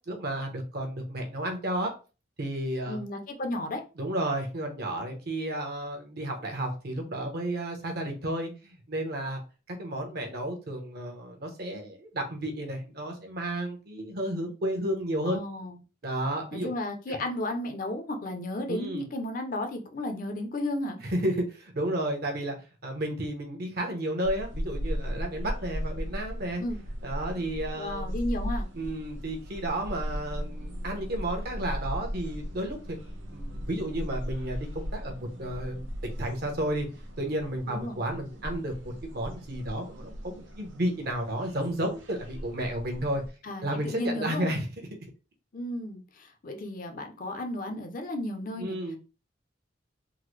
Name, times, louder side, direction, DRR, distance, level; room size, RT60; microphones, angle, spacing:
voice 1, 0.1-1.9 2.4-3.0 4.0-9.4 9.7-15.4 16.0-16.7 17.1-17.2 18.7-19.1 21.0-22.5 22.8-26.6 27.0-28.1 28.8-33.0 33.3-36.9 37.2-43.2 43.6-44.9 48.6-49.0, right 1 dB, 55° right, 4 dB, 0.9 m, -32 dB
voice 2, 2.9-3.8 15.2-15.8 16.5-21.0 26.6-26.8 27.8-28.7 37.7-38.0 43.4-44.5 45.5-48.8, left 1 dB, 45° left, 6 dB, 0.5 m, -33 dB
sound 1, 24.2-43.3, equal, 90° right, 0.8 m, -37 dB
3.7 x 2.1 x 3.1 m, 0.32 s
head